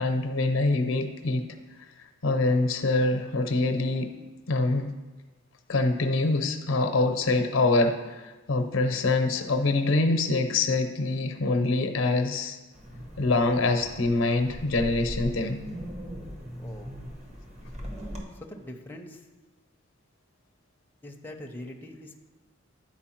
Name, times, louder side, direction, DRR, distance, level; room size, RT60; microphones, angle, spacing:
voice 1, 0.0-1.5 2.2-4.1 4.5-4.9 5.7-12.6 13.2-15.6, left 2 dB, 80° left, 6 dB, 0.7 m, -25 dB
Wind, 12.7-18.2, equal, 35° right, 1.2 m, -40 dB
voice 2, 16.6-16.9 18.4-19.2 21.0-22.2, left 1 dB, 10° left, 2 dB, 0.6 m, -42 dB
9.6 x 4.5 x 4.4 m, 1.2 s
head